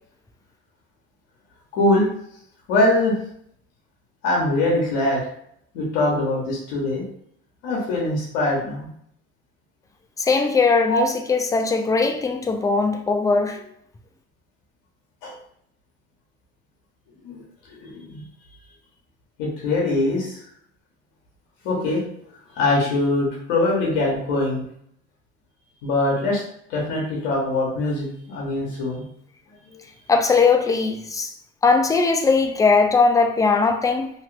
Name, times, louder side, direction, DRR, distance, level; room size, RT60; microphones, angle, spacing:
voice 1, 1.7-2.1 2.7-3.2 4.2-5.2 5.7-7.0 7.6-8.9 10.9-11.0 15.2-15.3 17.2-17.4 17.7-18.2 19.4-20.4 21.6-22.0 22.5-24.6 25.8-26.4 26.7-29.0 29.7-29.8, left 2 dB, 85° left, 1.0 m, -22 dB
voice 2, 10.2-13.6 30.1-31.3 31.6-34.1, left 4 dB, 10° left, 0.4 m, -19 dB
2.9 x 2.4 x 3.2 m
supercardioid pair, 95°, 29 cm